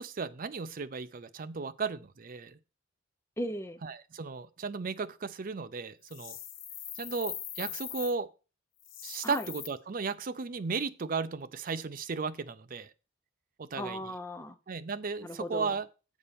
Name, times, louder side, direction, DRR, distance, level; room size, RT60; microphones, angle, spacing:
voice 1, 0.0-2.6 3.8-6.4 7.0-8.3 9.0-12.9 13.6-14.0 14.7-15.9, right 4 dB, 45° right, 0.5 m, -35 dB
voice 2, 3.4-3.8 9.2-9.5 13.8-14.6 15.2-15.7, left 1 dB, 15° left, 0.6 m, -37 dB
sound 1, 6.1-8.1 8.8-9.7, left 10 dB, 75° left, 1.0 m, -41 dB
7.2 x 4.2 x 6.8 m
head